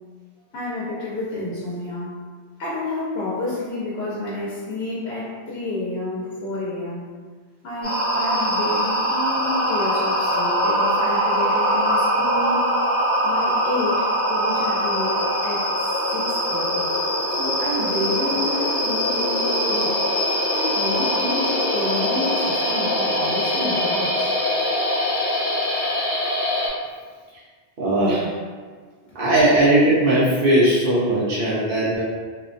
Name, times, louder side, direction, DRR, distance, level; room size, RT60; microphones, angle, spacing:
voice 1, 0.5-2.2 2.6-7.1 7.6-12.7 13.2-15.7 16.1-16.9 17.3-20.0 20.5-24.3, left 2 dB, 70° left, -7 dB, 0.8 m, -29 dB
Creeping Ambience, 7.8-26.7, equal, 25° left, 1.1 m, -22 dB
voice 2, 27.8-28.3 29.1-32.0, right 1 dB, 60° right, -10 dB, 0.8 m, -18 dB
2.8 x 2.2 x 2.5 m, 1.6 s
omnidirectional pair, 1.1 m